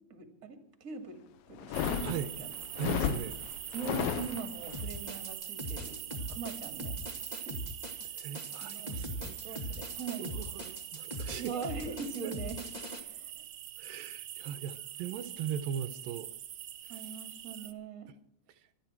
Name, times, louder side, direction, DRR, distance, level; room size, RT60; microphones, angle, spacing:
voice 1, 0.1-2.5 3.7-7.0 7.4-7.6 8.6-10.2 11.4-12.6 13.0-13.4 16.9-18.1, right 5 dB, 25° right, 2.2 m, -42 dB
sound 1, 1.6-4.8, left 9 dB, 85° left, 2.8 m, -34 dB
sound 2, 1.7-17.7, right 11 dB, 65° right, 1.9 m, -43 dB
voice 2, 2.0-2.3 2.8-3.4 8.2-9.7 10.2-11.6 12.2-12.3 13.8-16.3 16.9-17.0, right 9 dB, 80° right, 2.5 m, -39 dB
sound 3, 4.7-13.0, equal, 20° left, 1.3 m, -41 dB
26.0 x 11.0 x 4.5 m
omnidirectional pair, 4.1 m